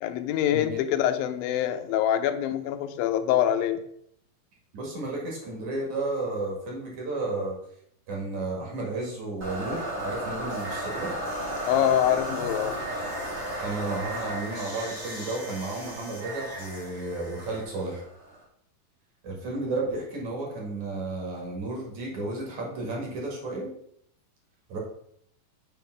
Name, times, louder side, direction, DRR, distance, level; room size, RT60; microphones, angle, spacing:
voice 1, 0.0-3.8 11.7-12.8, left 11 dB, 85° left, 9 dB, 2.4 m, -25 dB
voice 2, 4.7-7.6 8.1-11.1 13.6-18.0 19.2-23.7 24.7-24.8, right 2 dB, 55° right, -2 dB, 3.1 m, -32 dB
sound 1, 9.4-18.4, right 1 dB, 30° right, 1.6 m, -34 dB
7.6 x 3.5 x 5.9 m, 0.68 s
omnidirectional pair, 4.1 m